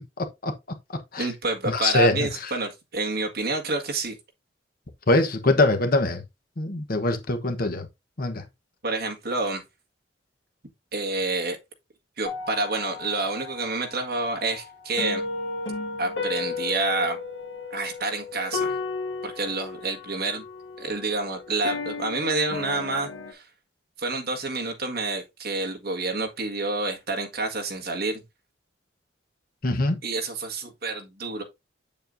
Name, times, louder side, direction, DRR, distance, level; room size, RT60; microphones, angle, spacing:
voice 1, 0.2-0.5 1.1-1.3 1.7-2.5 5.1-6.2 6.6-7.9 8.2-8.4 29.6-30.0, left 2 dB, 50° left, 1.1 m, -23 dB
voice 2, 1.2-4.1 8.8-9.6 10.9-11.6 12.2-15.2 16.0-17.2 17.7-18.8 19.2-20.4 20.8-23.4 24.0-28.2 30.0-31.4, right 3 dB, 55° right, 1.7 m, -28 dB
sound 1, 12.2-23.3, left 4 dB, 80° left, 1.6 m, -34 dB
7.4 x 7.1 x 2.6 m
head